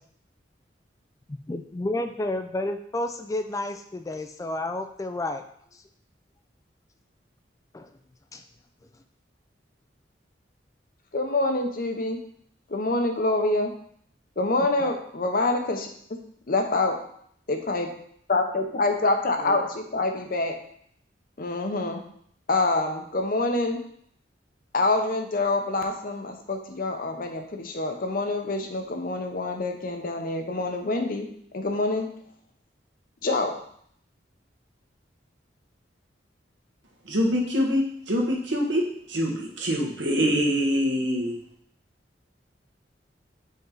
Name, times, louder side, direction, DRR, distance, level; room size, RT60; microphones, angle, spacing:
voice 1, 1.5-5.4 5.7-5.8 7.7-7.9 8.3-8.4 14.8-14.9, left 1 dB, 20° left, 7 dB, 0.3 m, -31 dB
voice 2, 11.1-12.2 12.7-13.7 14.4-15.9 16.5-17.0 17.5-17.9 18.3-20.6 21.4-22.0 22.5-23.8 24.7-31.3 31.5-32.1 33.2-33.6, left 2 dB, 50° left, 4 dB, 0.8 m, -26 dB
voice 3, 37.0-41.4, equal, 85° right, -2 dB, 1.5 m, -25 dB
5.4 x 4.4 x 3.9 m, 0.65 s
head